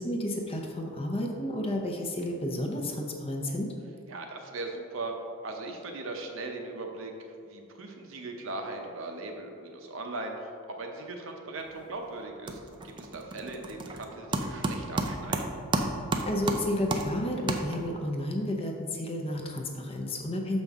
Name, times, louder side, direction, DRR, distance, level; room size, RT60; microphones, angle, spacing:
voice 1, 0.0-3.7 16.3-20.6, left 1 dB, 25° left, 1 dB, 0.6 m, -31 dB
voice 2, 4.1-5.1 5.4-7.1 7.4-10.5 10.8-15.6, right 2 dB, 65° right, 3 dB, 0.8 m, -39 dB
sound 1, 11.6-12.0 12.2-18.1, right 2 dB, 20° right, 0.4 m, -32 dB
6.6 x 5.3 x 3.6 m, 2.5 s
head